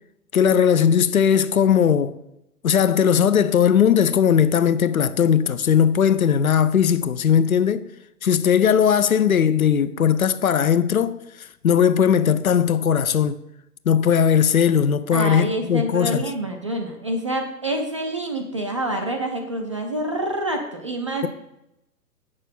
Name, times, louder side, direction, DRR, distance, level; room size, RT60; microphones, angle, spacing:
voice 1, 0.3-2.1 2.6-7.9 8.2-13.4 13.9-16.3, left 8 dB, 60° left, 0.6 m, -18 dB
voice 2, 15.1-21.3, right 1 dB, 20° right, 0.5 m, -27 dB
8.1 x 6.7 x 5.4 m
figure-of-eight pair, 125°, 47 cm